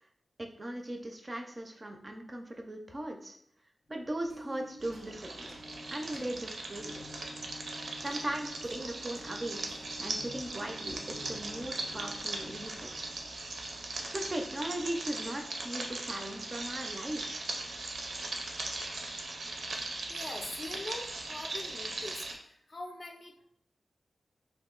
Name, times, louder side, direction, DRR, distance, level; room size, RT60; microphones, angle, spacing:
voice 1, 0.4-3.4 3.9-5.3 5.9-6.9 8.0-12.9 14.1-17.5, right 1 dB, 25° right, 3 dB, 0.4 m, -38 dB
sound 1, 4.0-13.6, left 1 dB, 85° left, 0.8 m, -50 dB
sound 2, 4.8-22.3, right 2 dB, 85° right, 0.5 m, -39 dB
voice 2, 19.6-23.5, left 2 dB, 45° left, 3 dB, 0.4 m, -44 dB
2.8 x 2.5 x 3.7 m, 0.69 s
wide cardioid pair, 140°, 0 cm